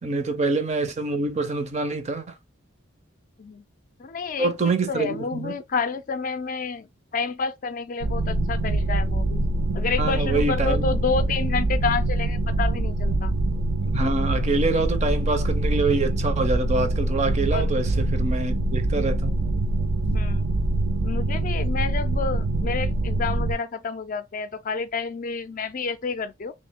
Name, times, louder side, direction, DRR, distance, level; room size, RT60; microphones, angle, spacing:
voice 1, 0.0-2.2 4.4-5.5 10.0-10.8 13.8-19.4, right 3 dB, 30° right, 0.5 m, -25 dB
voice 2, 4.0-9.4 9.7-13.3 17.5-17.7 20.1-20.6 21.0-26.5, left 5 dB, 40° left, 0.4 m, -29 dB
sound 1, 8.0-23.5, right 2 dB, 90° right, 0.5 m, -24 dB
3.1 x 2.8 x 3.4 m
head